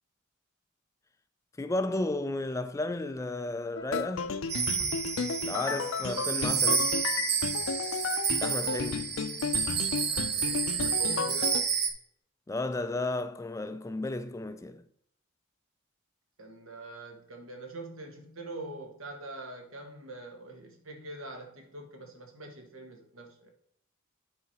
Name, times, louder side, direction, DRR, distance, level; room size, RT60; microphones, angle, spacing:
voice 1, 1.6-4.3 5.4-7.0 8.4-9.2 12.5-14.8, left 2 dB, 15° left, 0.3 m, -33 dB
sound 1, 3.8-11.6, left 5 dB, 70° left, 0.5 m, -33 dB
sound 2, 4.5-11.9, right 6 dB, 50° right, 0.9 m, -30 dB
voice 2, 10.1-11.7 16.4-23.5, right 2 dB, 80° right, 1.6 m, -44 dB
8.4 x 4.9 x 4.2 m
head